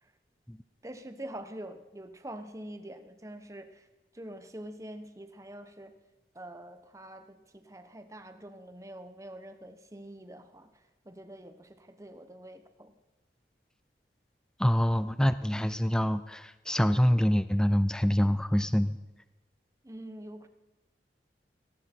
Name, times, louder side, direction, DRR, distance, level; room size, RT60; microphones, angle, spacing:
voice 1, 0.8-3.9 4.1-5.9 6.3-12.9 19.8-20.5, right 1 dB, 15° right, 8 dB, 1.0 m, -45 dB
voice 2, 14.6-19.0, equal, 5° left, 13 dB, 0.4 m, -26 dB
18.0 x 17.5 x 4.5 m, 1.1 s
head